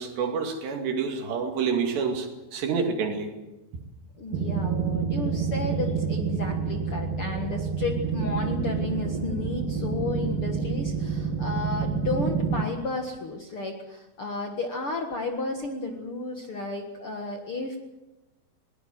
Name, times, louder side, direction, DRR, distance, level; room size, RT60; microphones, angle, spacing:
voice 1, 0.0-3.3, right 5 dB, 85° right, 4 dB, 4.7 m, -28 dB
voice 2, 4.2-17.8, left 3 dB, 50° left, 3 dB, 1.7 m, -33 dB
sound 1, 4.3-12.6, right 6 dB, 60° right, 3.3 m, -28 dB
22.0 x 19.5 x 7.8 m, 1.0 s
omnidirectional pair, 4.8 m